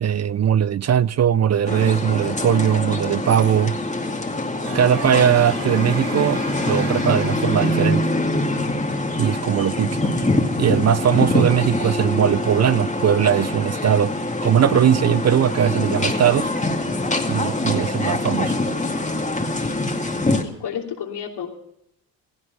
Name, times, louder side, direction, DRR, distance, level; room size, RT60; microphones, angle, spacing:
voice 1, 0.0-3.8 4.7-8.1 9.2-10.1 10.6-14.1 14.4-16.5 17.3-18.6, right 9 dB, 40° right, 0.5 m, -19 dB
sound 1, 1.7-20.4, left 2 dB, 15° left, 2.2 m, -24 dB
sound 2, 4.6-8.6, right 9 dB, 80° right, 1.7 m, -37 dB
Wind instrument woodwind instrument, 9.7-14.5, right 7 dB, 60° right, 7.2 m, -45 dB
voice 2, 20.4-21.5, left 8 dB, 75° left, 3.1 m, -31 dB
17.0 x 15.0 x 5.4 m
supercardioid pair, 65°, 41 cm